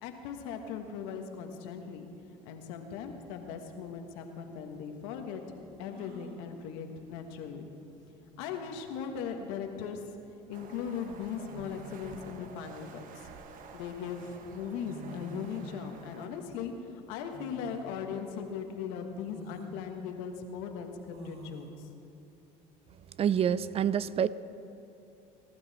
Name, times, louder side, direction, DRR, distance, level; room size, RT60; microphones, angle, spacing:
voice 1, 0.0-2.1 2.4-5.4 5.8-7.7 8.4-10.0 10.5-13.0 13.7-16.7 17.1-21.7, left 7 dB, 80° left, 5 dB, 1.5 m, -38 dB
sound 1, 5.9-6.4 7.9-8.0 8.3-8.8 10.2-10.4 11.5-12.2 12.9-13.9 14.6-14.7 14.8-15.7 17.3-17.9 18.4-18.5 19.2-19.7 21.1-21.7, right 2 dB, 70° right, 2.1 m, -49 dB
sound 2, 10.5-16.3, right 5 dB, 55° right, 1.1 m, -51 dB
voice 2, 23.2-24.3, right 8 dB, 35° right, 17 dB, 0.4 m, -27 dB
19.5 x 12.0 x 4.2 m, 2.8 s
supercardioid pair, 90°, 16 cm